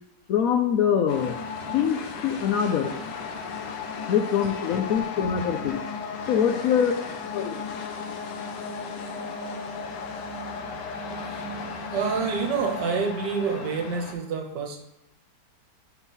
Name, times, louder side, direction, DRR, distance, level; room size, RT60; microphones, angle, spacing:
voice 1, 0.3-1.4 1.7-2.9 4.1-5.8 6.3-6.9 7.3-7.6, left 8 dB, 70° left, 4 dB, 0.9 m, -24 dB
sound 1, 1.1-14.1, left 5 dB, 85° left, 1.4 m, -35 dB
voice 2, 11.9-14.8, right 5 dB, 85° right, 3 dB, 1.5 m, -28 dB
4.4 x 4.1 x 5.4 m, 0.90 s
omnidirectional pair, 1.8 m